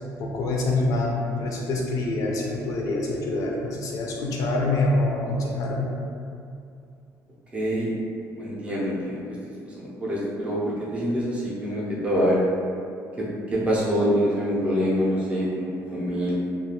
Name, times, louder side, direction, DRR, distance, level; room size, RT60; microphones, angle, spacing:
voice 1, 0.2-5.9, left 2 dB, 55° left, -1 dB, 0.4 m, -25 dB
voice 2, 7.5-7.9 8.4-9.2 9.7-10.6 10.9-12.4 13.5-16.4, equal, 15° right, -7 dB, 0.6 m, -25 dB
2.4 x 2.3 x 2.8 m, 2.4 s
cardioid pair, 160°, 7 cm